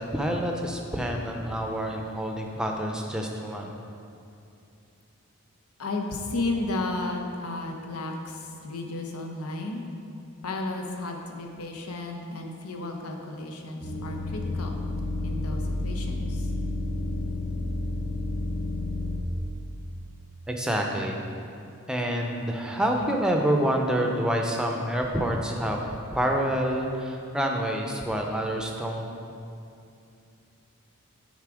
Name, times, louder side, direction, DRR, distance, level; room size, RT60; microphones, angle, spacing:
voice 1, 0.0-3.8 20.5-21.2 21.9-29.1, equal, 5° right, 1 dB, 0.5 m, -27 dB
voice 2, 5.8-9.8 10.4-14.8 15.2-16.4, left 2 dB, 85° left, 2 dB, 0.9 m, -33 dB
sound 1, 13.8-19.2, left 2 dB, 55° left, 1.2 m, -30 dB
9.4 x 3.7 x 4.9 m, 2.6 s
head